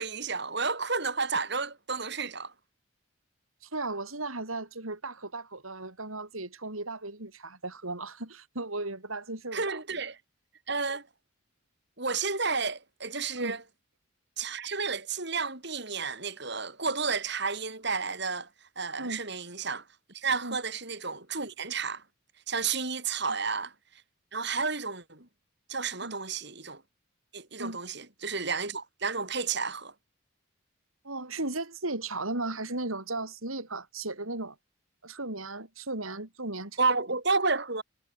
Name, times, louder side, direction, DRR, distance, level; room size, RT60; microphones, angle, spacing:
voice 1, 0.0-2.5 9.5-10.2 10.7-11.1 12.0-13.6 14.4-18.5 18.8-19.8 20.1-22.0 22.5-23.7 24.3-25.3 25.7-26.8 27.3-29.9 36.8-37.8, right 4 dB, 55° right, 7.4 m, -31 dB
voice 2, 3.6-9.8 13.3-13.6 19.0-19.2 20.4-20.6 23.2-23.4 26.0-26.2 27.6-27.8 31.0-34.6 35.0-36.8, right 2 dB, 90° right, 7.2 m, -36 dB
head